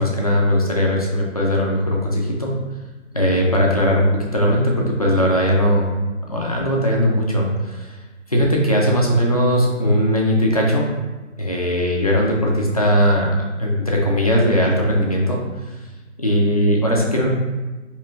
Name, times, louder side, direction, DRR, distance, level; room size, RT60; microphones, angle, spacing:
voice 1, 0.0-2.6 3.1-5.9 6.3-7.9 8.3-10.9 11.4-13.3 13.6-15.4 16.2-17.3, equal, 35° left, -2 dB, 0.4 m, -19 dB
4.4 x 2.9 x 2.3 m, 1.2 s
hypercardioid pair, 165°, 36 cm